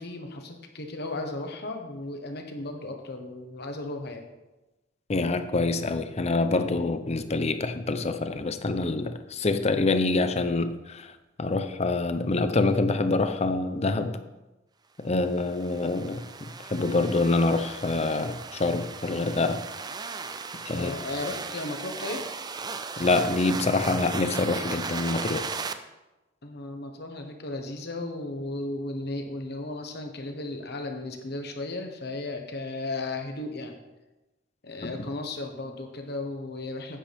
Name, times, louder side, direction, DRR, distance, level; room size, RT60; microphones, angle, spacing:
voice 1, 0.0-4.2 20.7-22.2 26.4-33.8 34.6-37.0, left 2 dB, 55° left, 4 dB, 1.3 m, -35 dB
voice 2, 5.1-11.1 11.4-14.2 15.0-19.6 20.7-21.0 23.0-25.5 34.8-34.9, left 3 dB, 35° left, 10 dB, 0.6 m, -26 dB
sound 1, 15.3-25.7, right 4 dB, 20° right, 0.4 m, -37 dB
9.9 x 9.0 x 3.5 m, 1.1 s
head